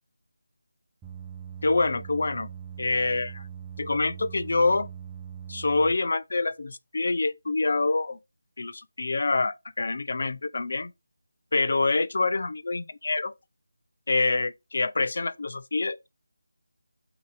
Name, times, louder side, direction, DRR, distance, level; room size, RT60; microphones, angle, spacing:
sound 1, 1.0-5.9, right 9 dB, 10° right, 0.6 m, -41 dB
voice 1, 1.6-2.5 2.8-3.5 3.8-4.9 5.5-8.2 8.6-10.9 11.5-13.3 14.1-16.1, left 3 dB, 55° left, 0.3 m, -26 dB
2.7 x 2.4 x 3.8 m
figure-of-eight pair, 165°, 0 cm